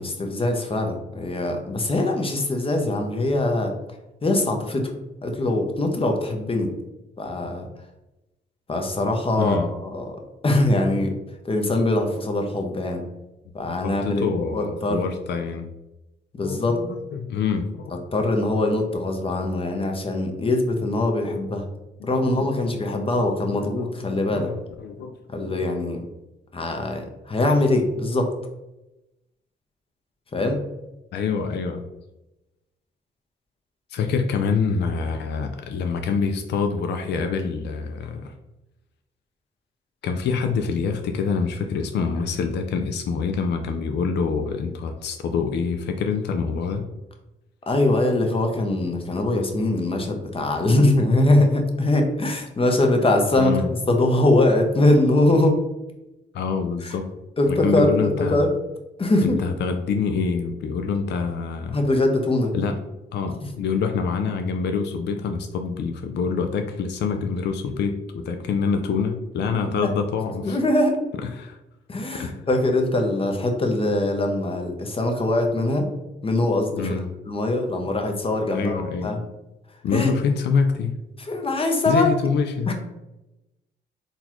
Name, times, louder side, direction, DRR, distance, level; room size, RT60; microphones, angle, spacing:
voice 1, 0.0-3.7 4.2-4.9 5.2-6.7 7.2-7.7 8.7-10.2 10.4-11.1 11.4-13.0 13.5-14.2 14.5-15.1 16.4-16.8 18.1-21.6 22.0-24.5 25.3-26.1 26.5-28.3 30.3-30.6 47.7-53.6 53.9-55.6 56.8-56.9 57.4-58.5 59.0-59.4 61.7-62.5 69.7-69.9 70.4-71.0 71.9-75.9 76.2-79.2 79.9-80.1 81.2-82.1 82.7-82.8, left 2 dB, 30° left, 3 dB, 0.7 m, -22 dB
voice 2, 9.4-9.7 13.8-15.7 16.4-17.9 22.0-23.1 23.5-25.6 31.1-31.8 33.9-38.3 40.0-46.9 53.4-53.7 56.3-57.1 57.5-58.5 59.2-61.8 62.5-62.8 63.1-70.6 71.2-71.6 72.1-72.3 76.8-77.1 78.5-79.1 79.8-81.0 81.9-82.7, left 5 dB, 60° left, 6 dB, 0.4 m, -26 dB
3.9 x 2.4 x 3.0 m, 0.97 s
cardioid pair, 70°, 19 cm